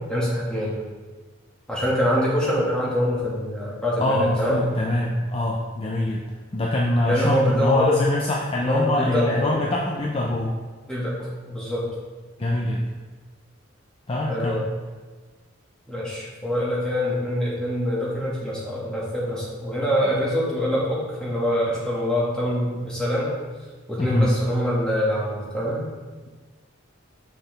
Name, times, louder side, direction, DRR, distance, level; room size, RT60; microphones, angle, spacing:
voice 1, 0.1-0.8 1.7-4.6 7.0-8.0 8.6-9.6 10.9-11.8 14.3-14.7 15.9-23.3 23.9-25.9, equal, 5° left, -7 dB, 1.7 m, -24 dB
voice 2, 4.0-6.2 6.5-10.6 12.4-12.9 14.1-14.6 24.0-24.3, left 1 dB, 30° left, -2 dB, 0.5 m, -24 dB
6.6 x 5.8 x 3.4 m, 1.4 s
head